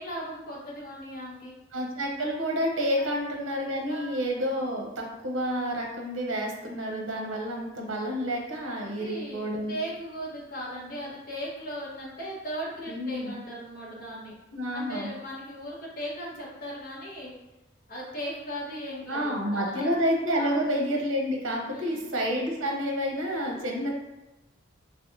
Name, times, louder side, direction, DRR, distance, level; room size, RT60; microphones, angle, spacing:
voice 1, 0.0-1.5 3.9-4.1 8.8-14.4 14.7-17.3 17.9-20.0 20.3-20.6 21.7-22.0, equal, 45° left, -6 dB, 1.2 m, -38 dB
voice 2, 1.7-9.7 12.9-13.3 14.5-15.1 19.1-23.9, equal, 70° right, 1 dB, 0.8 m, -29 dB
3.4 x 3.4 x 2.6 m, 1.0 s
head